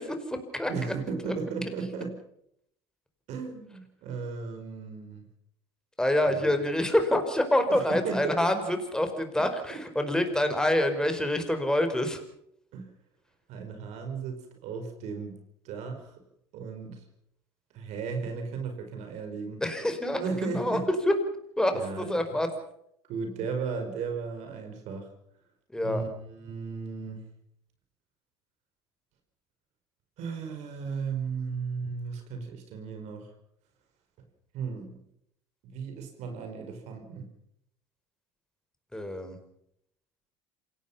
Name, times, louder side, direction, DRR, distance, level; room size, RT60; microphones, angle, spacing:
voice 1, 0.0-0.7 6.0-12.2 19.6-20.8 21.1-21.2 21.6-22.5 25.7-26.0 38.9-39.4, left 1 dB, 5° left, 7 dB, 4.8 m, -26 dB
voice 2, 0.7-2.2 3.3-5.2 6.2-6.6 7.7-8.4 9.4-9.8 12.7-12.9 13.5-15.4 15.6-16.2 16.5-17.1 17.7-19.6 20.1-20.9 21.7-22.4 23.1-25.1 25.8-27.2 30.2-33.3 34.5-35.0 35.6-37.3, right 5 dB, 60° right, 5 dB, 5.0 m, -35 dB
27.0 x 17.5 x 5.7 m, 0.72 s
hypercardioid pair, 85°, 13 cm